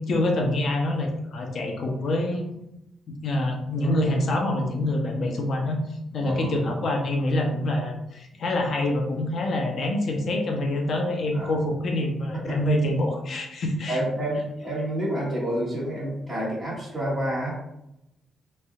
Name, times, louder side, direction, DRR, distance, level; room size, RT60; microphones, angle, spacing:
voice 1, 0.0-2.5 3.2-5.8 6.1-14.0, left 1 dB, 55° left, 1 dB, 0.6 m, -26 dB
voice 2, 6.2-6.5 11.3-11.5 12.3-12.6 13.9-17.5, right 1 dB, 10° right, -13 dB, 1.5 m, -29 dB
3.3 x 2.6 x 2.3 m, 0.85 s
cardioid pair, 105°, 0 cm